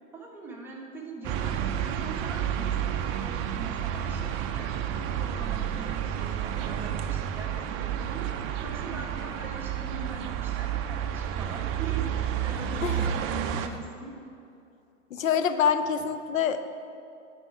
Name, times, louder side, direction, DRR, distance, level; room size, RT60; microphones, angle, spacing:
voice 1, 0.1-4.7 5.2-12.1 12.4-14.1, right 3 dB, 5° right, -4 dB, 1.4 m, -42 dB
sound 1, 1.2-13.7, right 9 dB, 35° right, 0.5 m, -30 dB
voice 2, 15.1-16.7, left 7 dB, 85° left, 10 dB, 0.7 m, -25 dB
10.5 x 4.6 x 4.8 m, 2.6 s
hypercardioid pair, 100°, 39 cm